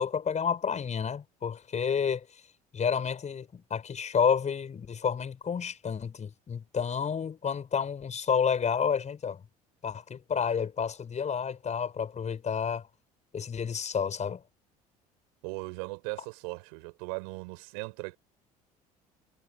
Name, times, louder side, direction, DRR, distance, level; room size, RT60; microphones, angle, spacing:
voice 1, 0.0-2.3 2.7-9.4 9.8-12.9 13.3-14.4, left 7 dB, 35° left, 5.9 m, -30 dB
voice 2, 15.4-18.2, right 34 dB, 75° right, 4.5 m, -38 dB
hypercardioid pair, 65°, 19 cm